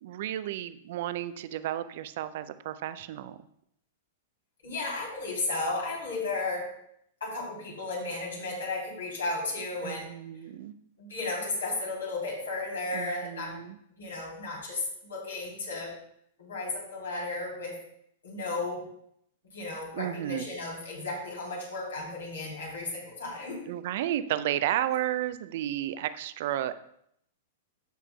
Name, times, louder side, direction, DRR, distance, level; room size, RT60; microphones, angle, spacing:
voice 1, 0.0-3.4 9.8-10.7 12.9-13.8 19.9-20.5 23.7-26.8, right 12 dB, 55° right, 13 dB, 0.4 m, -32 dB
voice 2, 4.6-6.7 7.2-10.1 11.0-13.6 14.0-15.9 16.4-17.7 18.2-18.8 19.5-23.6, left 2 dB, 80° left, -3 dB, 3.3 m, -34 dB
13.5 x 6.0 x 2.3 m, 0.73 s
hypercardioid pair, 105°, 0 cm